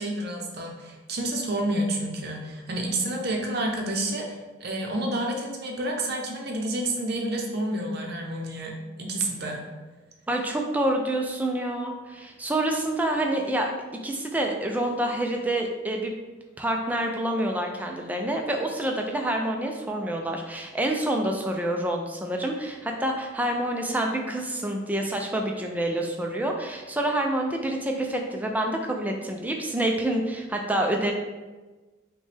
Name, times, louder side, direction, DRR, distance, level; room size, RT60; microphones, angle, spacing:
voice 1, 0.0-4.3 4.6-9.6, right 1 dB, 50° right, 0 dB, 0.7 m, -29 dB
voice 2, 10.3-13.7 14.0-16.1 16.6-31.1, right 1 dB, 10° right, 2 dB, 0.3 m, -27 dB
5.4 x 2.2 x 3.3 m, 1.2 s
head